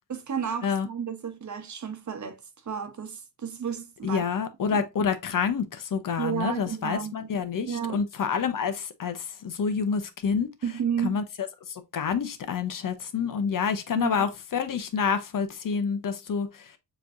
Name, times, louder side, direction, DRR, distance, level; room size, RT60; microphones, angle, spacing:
voice 1, 0.1-2.4 2.6-4.2 4.7-4.8 6.2-7.3 7.6-8.0 10.6-11.2 13.9-14.3, right 7 dB, 40° right, 1.1 m, -32 dB
voice 2, 4.0-10.5 11.0-11.2 11.7-16.7, left 6 dB, 50° left, 0.8 m, -28 dB
6.8 x 3.0 x 2.6 m
cardioid pair, 115°, 43 cm